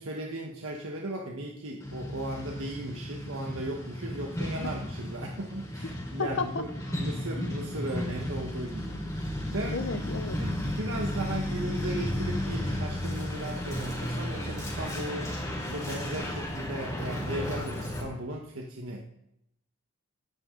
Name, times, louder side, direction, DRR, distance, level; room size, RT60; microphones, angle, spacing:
voice 1, 0.0-6.7 7.0-9.0 9.5-10.0 10.4-15.4 15.7-19.0, right 1 dB, 65° right, 0 dB, 1.4 m, -36 dB
Truck, 1.8-18.0, left 1 dB, 15° left, 4.2 m, -34 dB
voice 2, 6.2-7.1 7.4-7.5 9.7-10.4, left 4 dB, 55° left, 9 dB, 0.6 m, -34 dB
17.5 x 11.0 x 3.9 m, 0.83 s
head